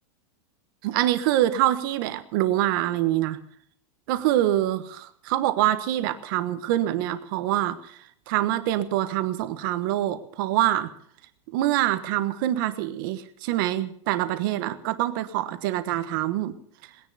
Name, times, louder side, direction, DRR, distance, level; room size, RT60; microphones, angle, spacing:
voice 1, 0.8-3.4 4.1-8.0 8.3-10.9 11.5-16.6, right 13 dB, 40° right, 12 dB, 1.3 m, -25 dB
20.0 x 10.0 x 6.8 m, 0.62 s
supercardioid pair, 175°, 18 cm